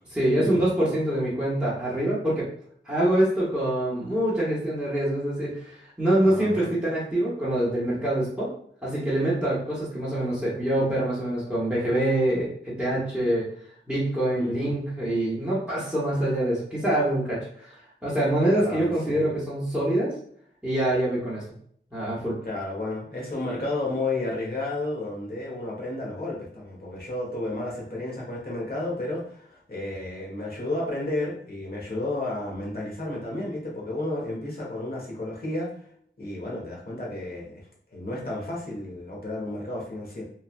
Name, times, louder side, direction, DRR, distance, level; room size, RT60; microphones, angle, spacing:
voice 1, 0.1-2.5 2.8-8.5 8.8-13.5 13.9-20.1 20.6-21.4 21.9-22.4, right 1 dB, 5° right, -9 dB, 1.1 m, -25 dB
voice 2, 6.2-6.7 14.3-14.7 18.6-19.2 22.4-35.7 36.2-40.2, left 2 dB, 50° left, -3 dB, 1.1 m, -32 dB
3.1 x 2.4 x 2.4 m, 0.63 s
wide cardioid pair, 55°, 21 cm